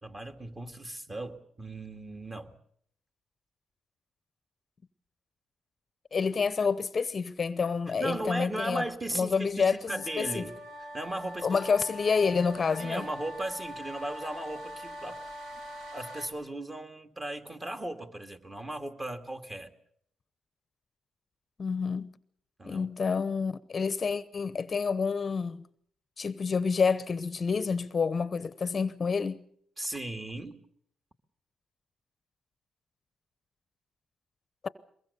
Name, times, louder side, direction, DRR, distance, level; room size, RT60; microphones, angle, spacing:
voice 1, 0.0-2.5 8.0-10.6 10.9-11.6 12.8-15.2 15.9-19.7 22.6-22.9 29.8-30.6, right 1 dB, 20° right, 2.3 m, -37 dB
voice 2, 6.1-8.8 9.1-10.5 11.4-13.0 21.6-22.1 22.7-25.7 26.2-29.4 34.6-34.7, left 5 dB, 35° left, 0.8 m, -28 dB
sound 1, 9.9-16.3, equal, 85° right, 6.1 m, -43 dB
23.0 x 22.0 x 6.9 m
cardioid pair, 90°, 0 cm